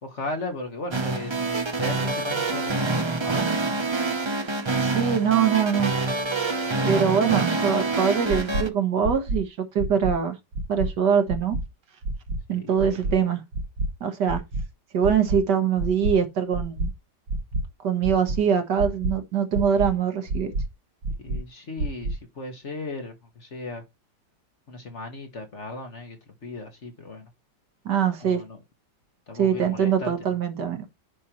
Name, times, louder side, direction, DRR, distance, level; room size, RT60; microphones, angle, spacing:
voice 1, 0.0-3.6 12.5-13.3 21.2-23.8 24.7-27.3 28.2-28.6 29.3-30.1, left 2 dB, 40° left, 1.8 m, -37 dB
sound 1, 0.9-8.7, right 3 dB, 40° right, 0.4 m, -26 dB
voice 2, 4.8-5.9 6.9-10.4 10.7-11.6 12.5-13.4 14.0-14.4 14.9-16.9 17.8-20.5 27.9-28.4 29.3-30.8, right 7 dB, 65° right, 1.9 m, -23 dB
sound 2, 8.3-8.6 9.0-9.4 9.8-10.1 10.5-10.9 11.3-11.6 12.0-12.4 12.8-13.1 13.5-13.9 14.3-14.6 15.0-15.4 15.8-16.1 16.5-16.9 17.3-17.6 18.0-18.4 18.8-19.1 19.5-19.9 20.3-20.6 21.0-21.4 21.8-22.1, right 2 dB, 85° right, 2.3 m, -27 dB
10.0 x 5.5 x 3.0 m
omnidirectional pair, 2.0 m